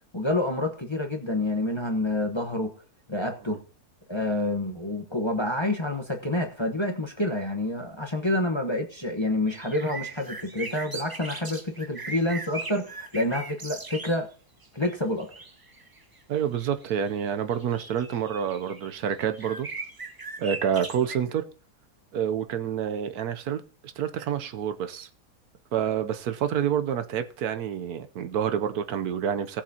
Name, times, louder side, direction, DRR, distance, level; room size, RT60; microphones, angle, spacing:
voice 1, 0.1-2.7 3.1-3.6 4.1-14.3 14.7-15.3, left 1 dB, 20° left, 1.0 m, -28 dB
sound 1, 9.5-14.2 14.6-21.2, right 3 dB, 35° right, 0.3 m, -39 dB
voice 2, 16.3-19.7 20.4-21.4 22.1-23.6 24.0-25.1 25.7-29.6, right 8 dB, 70° right, 1.2 m, -28 dB
18.0 x 7.2 x 2.8 m
omnidirectional pair, 1.7 m